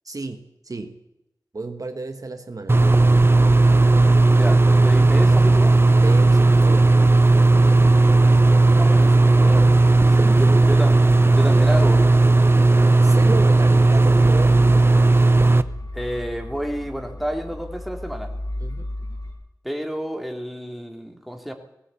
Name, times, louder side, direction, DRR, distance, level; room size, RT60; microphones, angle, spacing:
voice 1, 0.0-1.0 1.5-2.8 6.0-6.9 10.1-10.9 13.0-14.9 18.6-18.8, right 3 dB, 55° right, 7 dB, 1.6 m, -33 dB
sound 1, 2.7-15.6, right 2 dB, 35° right, 0.9 m, -15 dB
sound 2, 3.3-19.3, left 1 dB, 60° left, 7.9 m, -36 dB
voice 2, 4.3-5.8 8.3-9.7 10.4-11.0 11.3-12.0 15.9-18.3 19.6-21.5, equal, ahead, 4 dB, 3.3 m, -30 dB
18.5 x 17.5 x 8.5 m, 0.87 s
wide cardioid pair, 65°, 7 cm